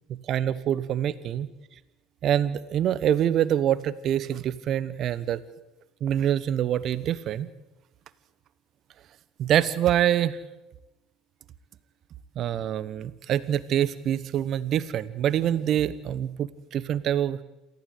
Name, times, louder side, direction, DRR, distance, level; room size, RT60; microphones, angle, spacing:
voice 1, 0.0-1.5 2.2-5.4 6.0-7.5 9.4-10.4 12.3-17.4, right 10 dB, 50° right, 17 dB, 1.1 m, -25 dB
28.0 x 15.0 x 8.3 m, 1.1 s
hypercardioid pair, 65°, 0 cm